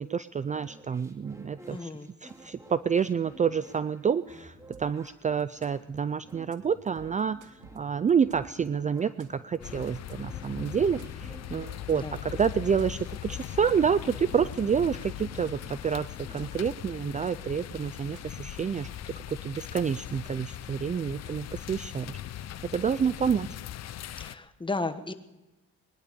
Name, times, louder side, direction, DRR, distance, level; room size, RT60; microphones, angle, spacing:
voice 1, 0.0-1.9 2.2-18.9 19.3-22.2 22.7-23.6, right 7 dB, 25° right, 15 dB, 0.4 m, -28 dB
sound 1, 0.5-16.5, right 1 dB, 10° right, 2.2 m, -52 dB
voice 2, 1.7-2.1 11.9-12.2 24.1-25.1, left 3 dB, 15° left, 9 dB, 1.2 m, -34 dB
sound 2, 4.7-5.1 5.4-6.0 6.3-6.6 6.9-8.7 9.0-9.6 9.9-10.1 10.4-12.3 12.6-13.2 13.5-13.7 14.0-15.8 16.1-16.7 17.0-17.3 17.6-18.9, right 6 dB, 80° right, 1.4 m, -52 dB
sound 3, 9.6-24.4, left 12 dB, 60° left, 0.7 m, -40 dB
21.0 x 11.0 x 5.2 m, 1.0 s
cardioid pair, 90°, 30 cm